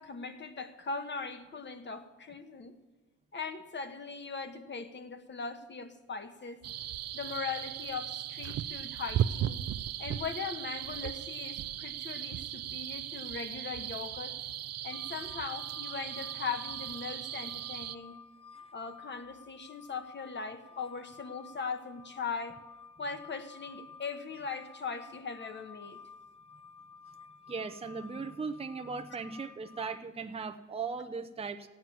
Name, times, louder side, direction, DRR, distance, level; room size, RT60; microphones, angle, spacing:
voice 1, 0.0-2.7 3.3-6.6 7.1-9.6 10.0-14.3 14.8-18.2 18.7-22.6 23.0-26.0, left 5 dB, 35° left, 8 dB, 1.3 m, -39 dB
sound 1, 6.6-18.0, right 11 dB, 55° right, 0.5 m, -37 dB
sound 2, 14.9-30.0, left 5 dB, 20° left, 0.7 m, -53 dB
voice 2, 27.5-31.7, right 5 dB, 20° right, 7 dB, 0.7 m, -38 dB
15.0 x 9.3 x 7.3 m, 1.2 s
cardioid pair, 90°, 30 cm